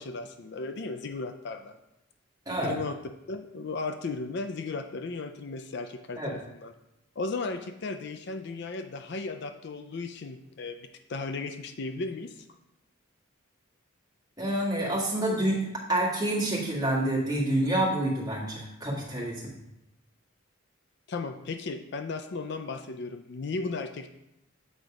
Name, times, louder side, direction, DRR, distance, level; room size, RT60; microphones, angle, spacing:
voice 1, 0.0-1.8 2.6-3.0 3.3-6.7 7.2-12.5 21.1-24.1, left 3 dB, 55° left, 8 dB, 0.4 m, -35 dB
voice 2, 14.4-15.6 15.9-19.5, right 1 dB, 20° right, -5 dB, 1.8 m, -28 dB
8.1 x 3.9 x 4.8 m, 0.85 s
head